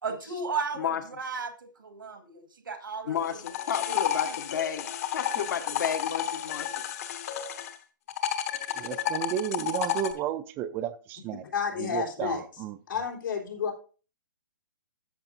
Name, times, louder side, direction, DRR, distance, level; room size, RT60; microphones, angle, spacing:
voice 1, 0.0-3.4 3.9-4.4, right 4 dB, 90° right, 1.7 m, -35 dB
voice 2, 3.0-4.9 5.1-6.7, left 8 dB, 65° left, 1.3 m, -31 dB
sound 1, 3.2-7.7 8.1-10.1, left 10 dB, 45° left, 1.1 m, -31 dB
voice 3, 8.8-11.4 11.8-12.8, right 11 dB, 20° right, 0.4 m, -33 dB
voice 4, 11.4-13.7, left 6 dB, 80° left, 3.5 m, -32 dB
13.0 x 6.7 x 2.6 m
hypercardioid pair, 150°, 11 cm